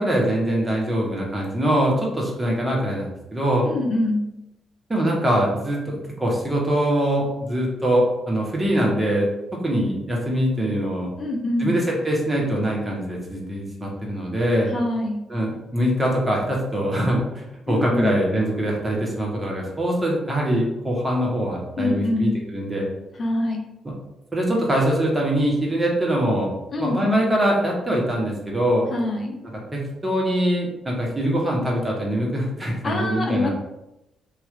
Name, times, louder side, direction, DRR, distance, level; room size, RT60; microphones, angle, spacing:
voice 1, 0.0-3.7 4.9-9.3 9.6-11.1 11.6-14.7 15.3-22.9 23.8-24.0 24.3-26.5 26.8-28.9 29.7-33.5, equal, 25° right, -2 dB, 1.3 m, -23 dB
voice 2, 3.6-4.3 11.2-11.8 14.7-15.2 17.7-18.2 21.8-22.4 23.2-23.7 26.7-27.1 28.9-29.4 32.8-33.5, left 2 dB, 50° left, 1 dB, 0.7 m, -24 dB
3.0 x 2.5 x 3.8 m, 0.91 s
hypercardioid pair, 45°, 0 cm